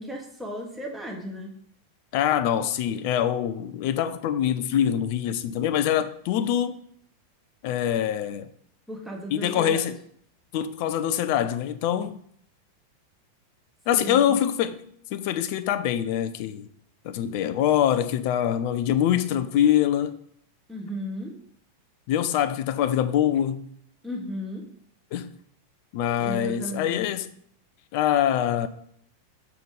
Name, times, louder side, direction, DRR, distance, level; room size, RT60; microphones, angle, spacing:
voice 1, 0.0-1.5 8.9-9.8 14.0-14.3 20.7-21.3 24.0-24.7 26.2-27.0, equal, 5° right, 1.6 m, -35 dB
voice 2, 2.1-6.7 7.6-8.5 9.3-10.0 10.5-12.2 13.9-14.8 15.1-16.7 17.0-20.2 22.1-23.7 25.1-25.3 25.9-27.3 27.9-28.7, left 10 dB, 45° left, 0.5 m, -24 dB
6.7 x 4.0 x 4.9 m
figure-of-eight pair, 90°, 0 cm